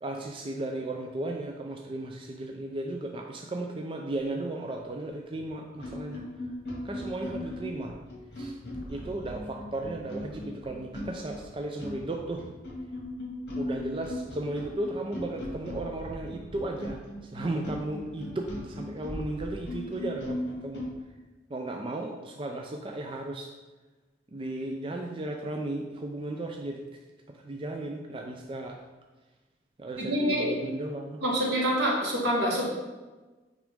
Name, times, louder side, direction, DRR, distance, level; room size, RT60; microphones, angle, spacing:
voice 1, 0.0-6.2 6.8-7.9 8.4-8.6 8.9-12.5 13.6-20.8 21.5-23.5 24.3-26.9 27.3-28.8 29.8-31.2, right 2 dB, 30° right, 2 dB, 0.4 m, -35 dB
sound 1, 5.3-5.5 5.8-20.9, left 1 dB, 60° left, 2.0 m, -38 dB
voice 2, 30.0-30.5 31.2-32.6, equal, 75° right, -3 dB, 1.7 m, -26 dB
6.0 x 5.0 x 3.6 m, 1.2 s
head